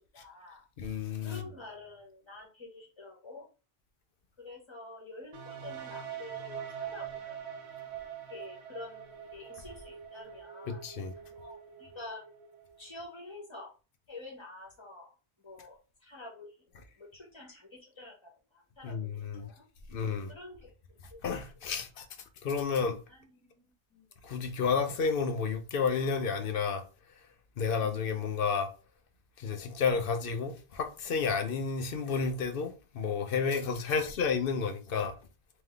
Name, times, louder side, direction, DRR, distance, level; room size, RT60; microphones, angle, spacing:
voice 1, 0.0-0.6 1.2-3.5 4.4-7.5 7.9-8.0 8.3-10.8 11.3-12.2 12.8-13.7 14.1-15.1 15.4-19.1 19.3-19.6 20.3-21.2 21.5-21.6 23.1-24.1 33.9-34.3, left 2 dB, 25° left, 1.3 m, -48 dB
voice 2, 0.8-1.4 10.7-11.1 18.8-19.5 19.9-20.3 21.2-22.1 22.4-23.0 24.2-26.8 27.6-28.7 29.4-35.2, left 5 dB, 60° left, 0.8 m, -31 dB
sound 1, 5.3-13.1, right 8 dB, 85° right, 1.1 m, -44 dB
3.7 x 3.1 x 3.2 m
omnidirectional pair, 1.1 m